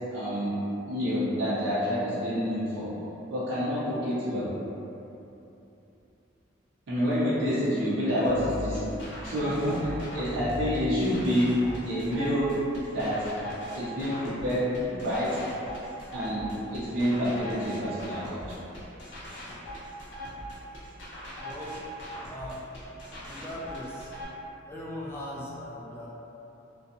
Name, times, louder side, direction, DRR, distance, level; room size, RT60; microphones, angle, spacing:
voice 1, 0.1-2.9 3.3-4.5 6.9-8.9 9.2-12.6 12.9-13.3 13.7-15.4 16.1-18.6, equal, 70° right, -11 dB, 0.5 m, -28 dB
sound 1, 8.2-24.2, equal, 65° left, 0.7 m, -40 dB
voice 2, 21.4-21.8 22.3-22.7 23.2-24.1 24.7-26.1, left 1 dB, 10° left, -6 dB, 0.3 m, -39 dB
2.5 x 2.3 x 2.6 m, 2.9 s
head